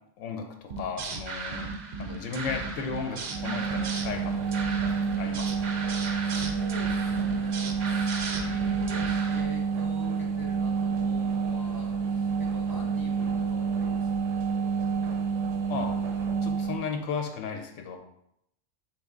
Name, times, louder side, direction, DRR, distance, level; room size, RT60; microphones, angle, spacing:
voice 1, 0.2-1.7 2.0-5.7 15.7-16.0 16.4-18.0, left 5 dB, 85° left, 3 dB, 0.9 m, -35 dB
sound 1, 0.7-9.4, right 4 dB, 55° right, 0.5 m, -36 dB
sound 2, 3.3-16.8, right 5 dB, 90° right, 1.0 m, -29 dB
voice 2, 6.2-14.4, left 1 dB, 30° left, -1 dB, 0.4 m, -45 dB
4.3 x 3.3 x 3.6 m, 0.77 s
omnidirectional pair, 1.3 m